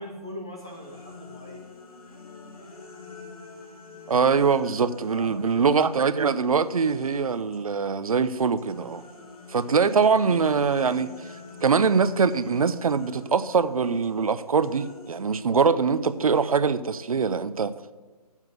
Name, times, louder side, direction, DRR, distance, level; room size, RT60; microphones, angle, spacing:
voice 1, 0.0-1.6 5.1-5.7 9.6-9.8, left 1 dB, 10° left, 0.4 m, -40 dB
sound 1, 0.6-7.7 8.0-16.6, left 4 dB, 65° left, 2.0 m, -47 dB
voice 2, 4.1-9.0 9.5-11.1 11.6-17.7, right 5 dB, 60° right, 0.6 m, -23 dB
8.0 x 7.2 x 7.8 m
hypercardioid pair, 165°, 20 cm